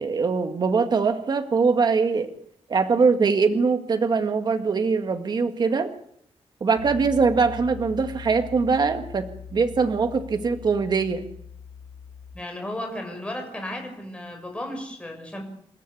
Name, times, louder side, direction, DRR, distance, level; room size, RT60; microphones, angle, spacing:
voice 1, 0.0-2.3 2.7-5.9 6.6-11.3, right 5 dB, 45° right, 7 dB, 1.9 m, -22 dB
Piano, 6.8-12.3, left 6 dB, 75° right, 4.1 m, -41 dB
voice 2, 12.3-15.4, left 1 dB, 10° left, 3 dB, 6.1 m, -34 dB
28.5 x 14.0 x 8.5 m, 0.68 s
wide cardioid pair, 150°, 10 cm